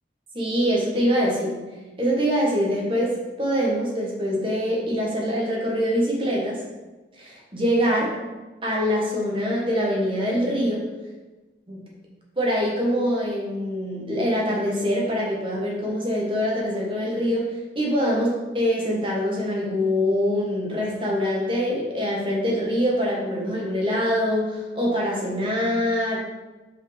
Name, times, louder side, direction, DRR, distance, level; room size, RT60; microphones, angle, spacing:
voice 1, 0.3-1.7 2.0-6.6 7.2-8.2 8.6-10.9 11.7-11.9 12.4-26.2, equal, 30° right, -3 dB, 1.6 m, -24 dB
5.7 x 5.0 x 5.1 m, 1.2 s
head